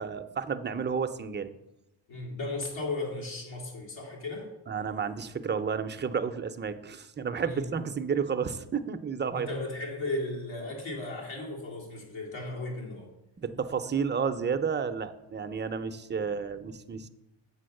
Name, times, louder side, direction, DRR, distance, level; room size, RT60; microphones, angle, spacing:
voice 1, 0.0-1.5 4.7-9.5 13.4-17.1, right 6 dB, 25° right, 8 dB, 0.5 m, -31 dB
voice 2, 2.1-4.5 7.4-7.9 9.3-13.1, left 2 dB, 75° left, -1 dB, 2.4 m, -36 dB
7.8 x 4.1 x 6.4 m, 0.91 s
cardioid pair, 85°, 47 cm